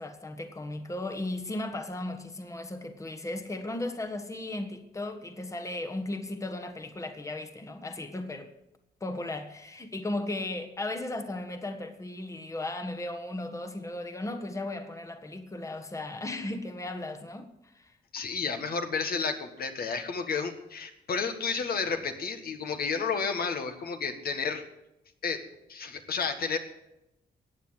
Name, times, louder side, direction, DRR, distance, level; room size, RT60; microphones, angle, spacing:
voice 1, 0.0-8.5 9.0-17.9, left 2 dB, 20° left, 1.4 m, -36 dB
voice 2, 18.1-24.6 25.2-25.4 25.7-26.6, left 5 dB, 65° left, 1.8 m, -31 dB
15.0 x 9.0 x 8.0 m
cardioid pair, 100°, 17 cm